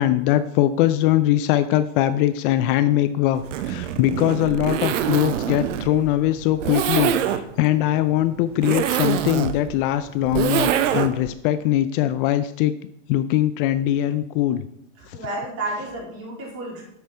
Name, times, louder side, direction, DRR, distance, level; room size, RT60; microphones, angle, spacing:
voice 1, 0.0-12.7 13.1-14.6 15.1-15.3, left 13 dB, 45° left, 13 dB, 0.5 m, -21 dB
Zipper (clothing), 3.4-11.3, right 10 dB, 80° right, 0.8 m, -25 dB
voice 2, 15.0-16.8, right 2 dB, 40° right, -2 dB, 3.9 m, -31 dB
9.1 x 7.6 x 4.3 m, 0.78 s
hypercardioid pair, 125°, 37 cm